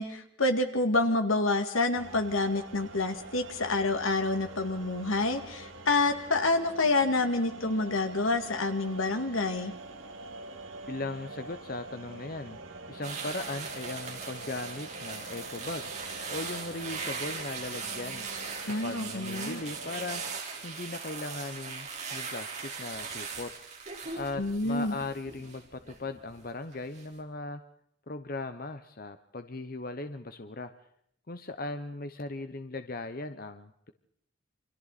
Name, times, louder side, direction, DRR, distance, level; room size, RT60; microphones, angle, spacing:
voice 1, 0.0-9.7 18.7-19.6 24.4-24.9, left 2 dB, 80° left, 7 dB, 2.1 m, -28 dB
sound 1, 1.9-20.4, right 2 dB, 70° right, 2.2 m, -46 dB
voice 2, 10.8-12.6 12.9-15.9 16.3-18.3 18.7-20.2 20.6-23.5 24.1-27.6 28.1-30.7 31.3-33.9, left 2 dB, 45° left, 9 dB, 0.9 m, -38 dB
sound 2, 13.0-26.4 26.7-27.0, right 5 dB, 35° right, 4.3 m, -39 dB
28.5 x 25.5 x 4.2 m, 0.69 s
head